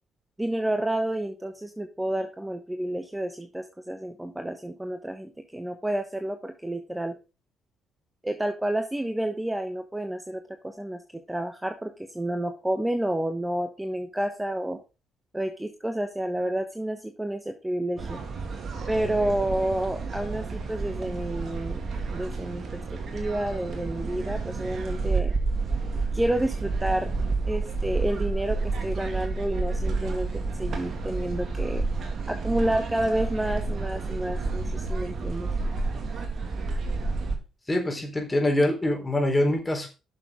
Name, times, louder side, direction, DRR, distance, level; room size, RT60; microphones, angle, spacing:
voice 1, 0.4-7.1 8.2-11.0 11.3-14.8 15.3-18.2 18.9-21.8 22.1-22.8 23.1-25.3 26.1-27.1 27.5-31.8 32.3-35.5, right 1 dB, 10° right, 6 dB, 1.2 m, -30 dB
sound 1, 18.0-37.4, right 3 dB, 55° right, 2.3 m, -30 dB
voice 2, 37.7-39.9, left 1 dB, 20° left, 2 dB, 4.0 m, -24 dB
11.5 x 6.9 x 3.8 m, 0.30 s
hypercardioid pair, 50°, 0 cm